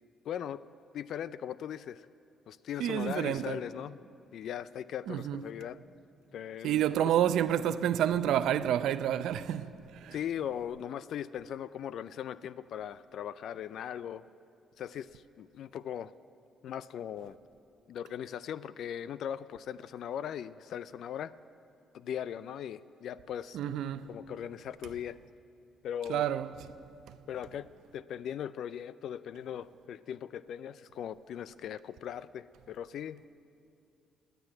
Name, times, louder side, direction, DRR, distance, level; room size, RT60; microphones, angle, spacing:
voice 1, 0.2-0.6 0.9-2.1 2.5-4.0 4.3-5.8 6.3-7.1 10.1-14.2 14.8-16.1 16.6-17.4 17.9-21.3 21.9-23.6 24.1-25.2 25.8-26.3 27.3-33.2, left 9 dB, 70° left, 0.4 m, -39 dB
voice 2, 2.8-3.6 5.1-5.4 6.6-10.2 23.5-24.1 26.1-26.7 27.1-27.2, right 10 dB, 80° right, 0.5 m, -29 dB
17.5 x 9.1 x 9.2 m
cardioid pair, 90°, 0 cm